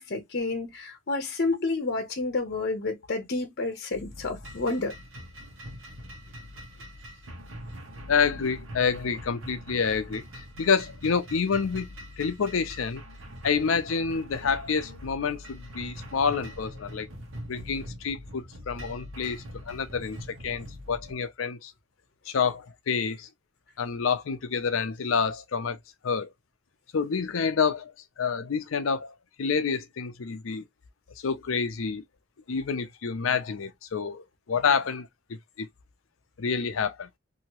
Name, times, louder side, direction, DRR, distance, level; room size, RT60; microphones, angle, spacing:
voice 1, 0.0-4.9, left 3 dB, 55° left, 0.8 m, -30 dB
sound 1, 3.9-21.1, equal, 75° right, 1.0 m, -43 dB
voice 2, 8.1-10.2 10.6-11.9 12.2-13.0 13.4-17.1 17.5-21.7 22.3-23.3 23.8-25.8 26.0-26.3 26.9-27.9 28.2-30.6 31.2-32.0 32.5-34.2 34.5-35.1 35.6-35.7 36.4-37.1, left 5 dB, 85° left, 0.5 m, -28 dB
2.9 x 2.7 x 2.9 m
head